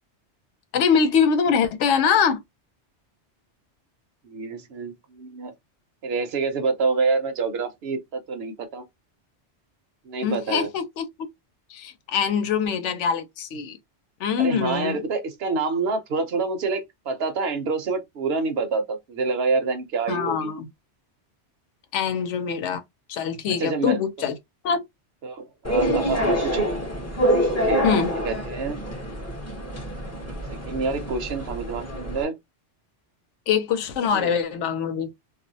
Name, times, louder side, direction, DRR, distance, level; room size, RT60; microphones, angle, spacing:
voice 1, 0.7-2.4 10.2-11.1 11.7-13.8 14.2-15.0 20.1-20.7 21.9-22.8 23.1-24.3 24.6-24.8 27.8-28.1 33.5-35.1, left 7 dB, 85° left, 0.9 m, -23 dB
voice 2, 4.2-5.5 6.0-8.8 10.0-10.7 14.4-20.5 23.6-24.0 25.2-26.7 27.5-27.9 28.2-28.8 30.7-32.4 34.1-34.3, right 4 dB, 65° right, 0.9 m, -27 dB
sound 1, 25.6-32.2, equal, 15° left, 0.6 m, -26 dB
2.4 x 2.0 x 2.6 m
omnidirectional pair, 1.2 m